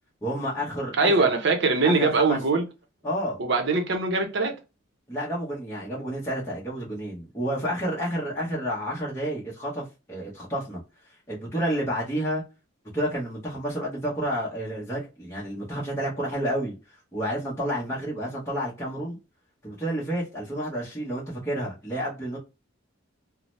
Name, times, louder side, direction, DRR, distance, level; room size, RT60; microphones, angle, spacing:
voice 1, 0.2-1.3 1.8-2.4 3.0-3.4 5.1-10.8 11.3-12.4 12.9-16.7 17.1-19.2 19.6-22.4, equal, 15° left, 0.7 m, -30 dB
voice 2, 1.0-2.6 3.4-4.6, right 3 dB, 60° right, 0.7 m, -22 dB
2.8 x 2.0 x 2.9 m
head